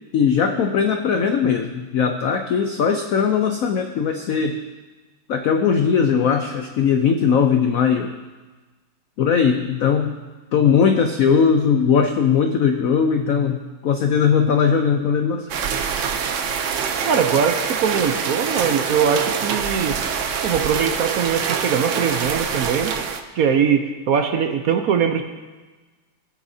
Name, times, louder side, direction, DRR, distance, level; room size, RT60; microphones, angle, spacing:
voice 1, 0.1-4.6 5.3-8.2 9.2-10.2 10.5-15.5, left 6 dB, 85° left, 6 dB, 0.7 m, -19 dB
sound 1, 15.5-23.2, right 6 dB, 85° right, 0.6 m, -25 dB
voice 2, 17.0-20.0 20.4-22.9 23.4-25.2, right 7 dB, 65° right, 6 dB, 0.9 m, -21 dB
18.5 x 9.0 x 2.7 m, 1.3 s
omnidirectional pair, 2.2 m